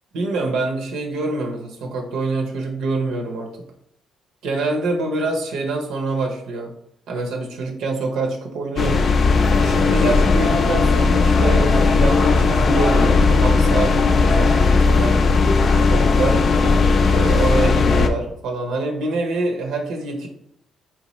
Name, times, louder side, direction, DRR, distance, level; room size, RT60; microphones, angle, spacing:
voice 1, 0.1-3.5 4.4-6.7 7.1-9.0 9.6-15.2 15.8-16.4 17.1-20.3, right 2 dB, 85° right, 2 dB, 0.6 m, -25 dB
sound 1, 8.8-18.1, left 4 dB, 50° left, 0.4 m, -16 dB
3.6 x 2.8 x 3.0 m, 0.72 s
cardioid pair, 90°, 0 cm